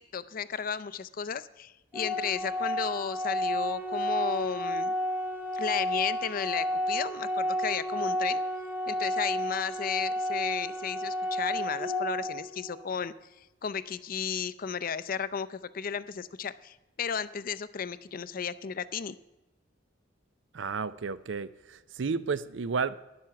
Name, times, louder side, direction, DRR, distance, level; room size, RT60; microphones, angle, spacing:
voice 1, 0.1-4.9 5.5-8.4 8.9-19.2, left 7 dB, 45° left, 15 dB, 0.5 m, -34 dB
Organ, 1.9-12.9, equal, 10° right, 1.3 m, -31 dB
voice 2, 20.5-22.9, right 5 dB, 70° right, 16 dB, 0.5 m, -32 dB
12.0 x 10.5 x 5.8 m, 1.0 s
head